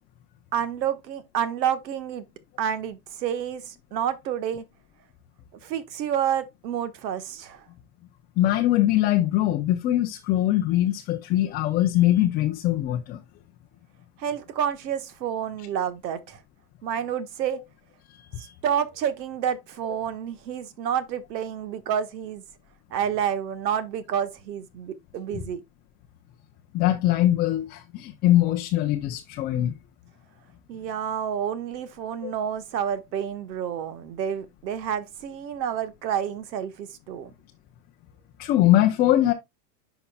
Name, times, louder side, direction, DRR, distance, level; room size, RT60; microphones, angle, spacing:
voice 1, 0.5-2.3 2.6-4.6 5.6-7.6 14.2-16.4 16.8-17.6 18.4-22.4 22.9-25.6 30.7-37.3, right 9 dB, 85° right, 1.4 m, -29 dB
voice 2, 8.4-13.2 18.3-18.5 25.3-25.4 26.7-29.7 32.2-32.3 38.4-39.3, left 14 dB, 20° left, 0.4 m, -22 dB
10.0 x 5.4 x 2.2 m
supercardioid pair, 135°, 49 cm